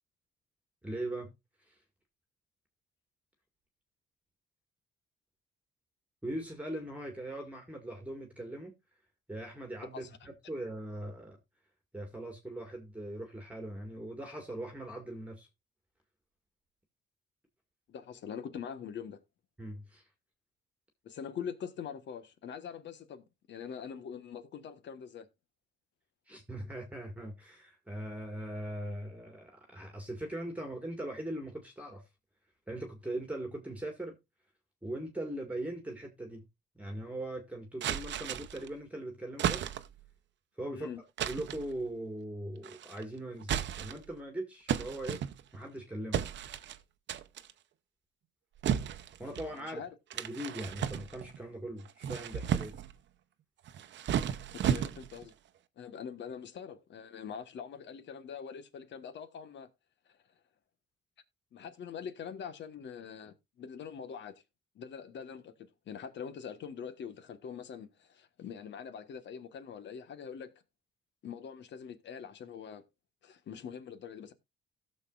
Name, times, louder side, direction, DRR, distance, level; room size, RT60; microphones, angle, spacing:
voice 1, 0.8-1.3 1.6-1.8 6.2-8.7 9.3-11.4 11.9-15.5 19.6-20.0 26.3-32.0 32.7-34.2 34.8-36.5 36.8-39.7 40.6-40.9 41.3-45.2 45.5-46.2 49.2-49.8 50.1-52.8, right 1 dB, 5° right, 1.8 m, -40 dB
voice 2, 17.9-19.2 21.0-25.3 40.7-41.0 49.5-49.9 54.5-55.3 55.8-59.7 60.1-60.2 61.5-64.4 64.7-70.5 71.2-72.8 73.2-74.3, left 7 dB, 65° left, 1.3 m, -43 dB
Angry Packing, 37.8-38.7 39.4-40.0 41.2-41.7 42.6-43.0 43.4-44.1 44.7-45.7 46.1-46.8 47.1-47.5 48.6-49.5 50.1-51.4 51.9-52.9 53.7-55.3, right 9 dB, 65° right, 0.8 m, -34 dB
16.5 x 6.7 x 2.4 m
cardioid pair, 90°, 20 cm